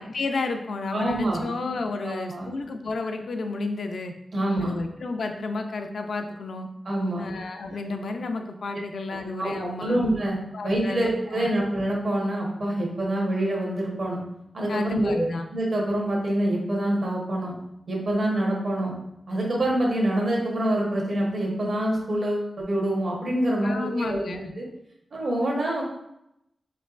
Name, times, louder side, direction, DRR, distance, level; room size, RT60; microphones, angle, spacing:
voice 1, 0.0-4.1 4.6-6.7 7.2-10.0 10.5-11.5 14.7-15.4 23.6-24.5, left 3 dB, 65° left, 5 dB, 0.4 m, -31 dB
voice 2, 0.9-1.4 2.0-2.5 4.3-4.7 6.8-7.2 9.1-10.4 10.6-14.2 14.5-17.5 17.9-18.9 19.3-24.2 24.6-24.7 25.1-25.8, right 1 dB, 50° right, -2 dB, 1.0 m, -26 dB
4.4 x 3.0 x 2.4 m, 0.80 s
wide cardioid pair, 160°, 0 cm